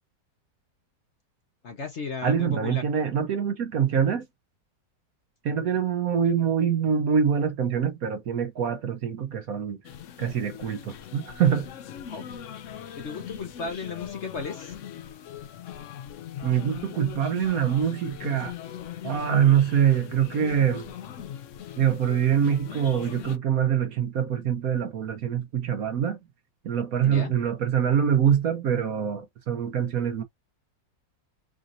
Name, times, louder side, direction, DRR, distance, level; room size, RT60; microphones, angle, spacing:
voice 1, 1.6-2.8 12.1-12.2 13.0-14.7 27.0-27.3, left 4 dB, 50° left, 1.0 m, -34 dB
voice 2, 2.2-4.3 5.4-9.8 10.2-11.7 16.4-18.5 19.0-20.9 21.8-26.2 26.6-30.2, right 8 dB, 60° right, 1.1 m, -24 dB
sound 1, 9.8-23.4, left 10 dB, 75° left, 0.7 m, -40 dB
4.9 x 2.6 x 2.5 m
omnidirectional pair, 1.9 m